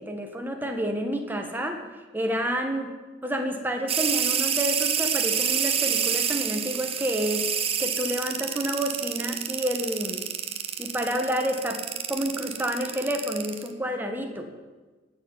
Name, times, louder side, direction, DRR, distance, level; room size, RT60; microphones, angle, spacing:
voice 1, 0.0-1.8 2.1-2.9 3.2-7.5 7.8-10.3 10.8-11.8 12.1-14.5, equal, 10° right, 3 dB, 1.7 m, -29 dB
sound 1, 3.9-13.7, right 8 dB, 30° right, 1.1 m, -27 dB
18.0 x 7.0 x 9.7 m, 1.3 s
head